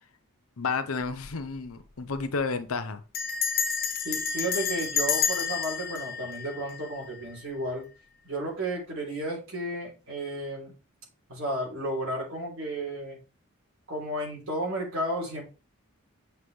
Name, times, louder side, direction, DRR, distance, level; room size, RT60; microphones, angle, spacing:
voice 1, 0.6-3.0, left 4 dB, 85° left, 0.7 m, -31 dB
Bell, 1.0-1.4 1.7-1.8 2.0-2.4 3.1-7.2, left 6 dB, 45° left, 1.0 m, -30 dB
voice 2, 4.0-7.9 8.2-10.7 11.3-13.2 13.9-15.4, right 1 dB, 70° right, 3.5 m, -33 dB
7.8 x 5.6 x 3.2 m
head